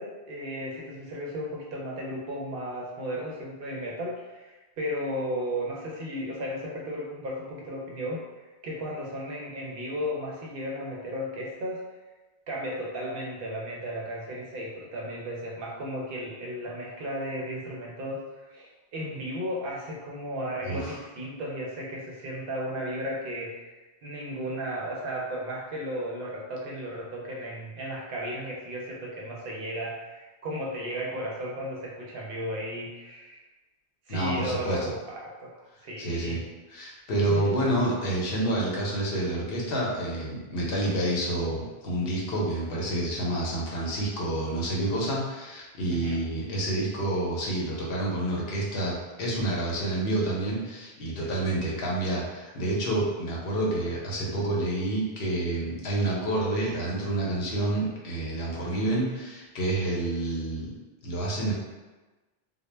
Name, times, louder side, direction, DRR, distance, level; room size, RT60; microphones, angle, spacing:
voice 1, 0.0-11.8 12.5-18.2 18.5-33.4 34.1-35.5 35.8-36.4 37.3-37.7 40.5-40.9 45.9-46.2 51.2-51.3 58.5-58.8, equal, 70° right, -3 dB, 0.7 m, -35 dB
voice 2, 20.6-21.0 34.1-34.9 36.0-36.4 36.7-60.7 61.0-61.5, right 1 dB, 70° left, -4 dB, 0.8 m, -28 dB
2.1 x 2.0 x 3.1 m, 1.2 s
omnidirectional pair, 1.0 m